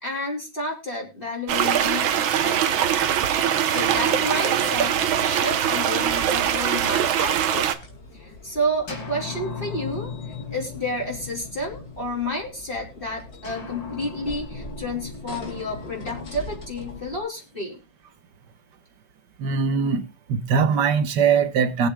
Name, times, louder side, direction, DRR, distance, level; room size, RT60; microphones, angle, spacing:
voice 1, 0.0-2.9 3.6-7.7 8.1-10.1 10.5-17.7, equal, 25° left, 3.5 m, -30 dB
sound 1, 1.5-7.8, right 9 dB, 85° right, 1.7 m, -22 dB
sound 2, 3.7-7.5 8.9-12.4 13.4-17.6, left 4 dB, 65° left, 3.4 m, -39 dB
sound 3, 6.0-17.2, left 1 dB, 50° left, 2.6 m, -42 dB
voice 2, 19.4-20.0 20.3-21.9, right 6 dB, 65° right, 1.5 m, -21 dB
22.0 x 8.0 x 2.2 m
omnidirectional pair, 2.1 m